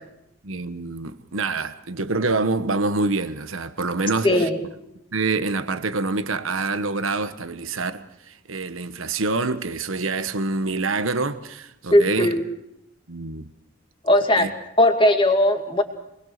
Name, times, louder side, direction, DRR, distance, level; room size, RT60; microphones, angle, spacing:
voice 1, 0.4-4.5 5.1-12.3 13.1-13.5 14.4-14.5, right 3 dB, 80° right, 1.3 m, -26 dB
voice 2, 4.2-4.6 11.9-12.4 14.0-14.5 14.8-15.8, left 1 dB, 25° left, 2.3 m, -18 dB
27.5 x 21.5 x 6.7 m
head